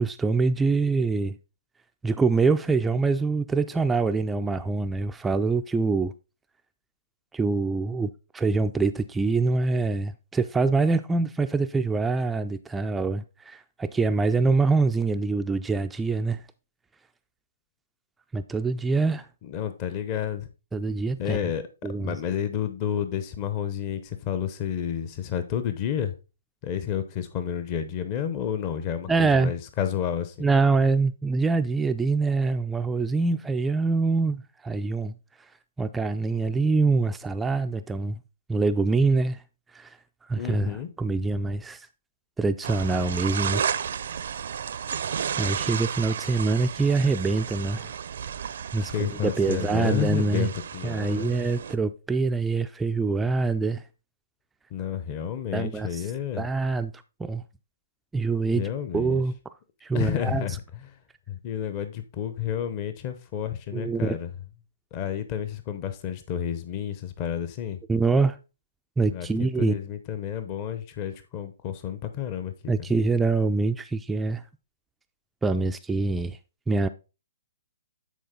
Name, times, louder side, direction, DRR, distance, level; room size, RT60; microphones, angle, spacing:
voice 1, 0.0-1.4 2.0-6.1 7.3-16.4 18.3-19.3 20.7-21.4 21.8-22.2 29.1-29.5 30.4-35.1 35.8-38.2 38.5-39.4 39.7-40.0 40.3-41.9 42.4-43.6 45.4-47.9 48.4-50.5 50.8-53.8 55.5-56.1 56.4-56.9 57.2-57.4 58.1-59.3 59.8-60.5 63.7-64.2 67.9-68.4 69.0-69.8 72.7-74.4 75.4-76.4 76.7-76.9, right 3 dB, 10° right, 0.3 m, -25 dB
voice 2, 19.4-20.5 21.2-21.6 21.9-26.1 26.6-30.5 40.3-40.9 48.8-51.3 54.7-56.4 58.5-59.2 59.9-60.9 61.3-64.3 64.9-67.8 69.1-72.5, left 9 dB, 30° left, 0.8 m, -30 dB
sound 1, 42.6-51.7, right 8 dB, 65° right, 0.5 m, -33 dB
9.3 x 4.2 x 3.7 m
hypercardioid pair, 145°, 0 cm